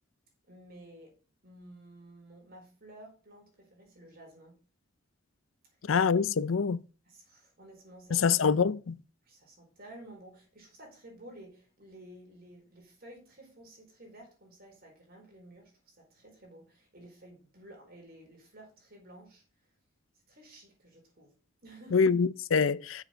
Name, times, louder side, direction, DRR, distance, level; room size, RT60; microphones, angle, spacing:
voice 1, 0.5-1.2 1.4-4.6 7.0-8.4 9.2-19.4 20.3-21.3 21.6-22.0, right 1 dB, 50° right, 4.3 m, -53 dB
voice 2, 5.9-6.8 8.1-8.9 21.9-23.0, left 5 dB, 85° left, 0.5 m, -25 dB
7.1 x 6.3 x 6.2 m
head